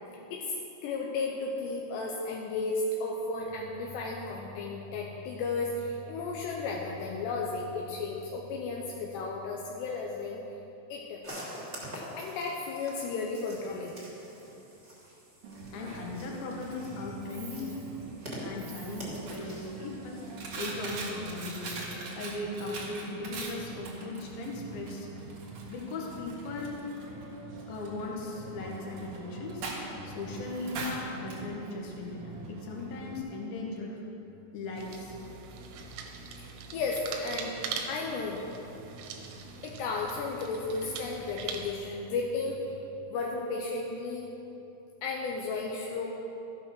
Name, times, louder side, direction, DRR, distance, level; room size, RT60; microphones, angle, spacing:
voice 1, 0.8-10.4 10.9-11.2 12.1-14.0 15.8-16.0 36.4-37.6 37.9-38.5 39.6-42.8 43.1-44.3 45.0-46.1, left 3 dB, 80° left, -1 dB, 2.5 m, -34 dB
sound 1, 11.2-21.1, equal, 15° right, 1.8 m, -46 dB
Coin (dropping), 15.4-33.2, right 3 dB, 60° right, 2.2 m, -42 dB
voice 2, 15.7-17.8 18.4-21.8 22.1-25.1 25.7-26.8 27.7-29.6 30.0-34.0 34.5-35.2 35.8-35.9, left 3 dB, 60° left, -1 dB, 2.7 m, -38 dB
sound 2, 34.8-41.7, right 5 dB, 90° right, 3.7 m, -41 dB
13.5 x 9.1 x 6.1 m, 3.0 s
omnidirectional pair, 6.0 m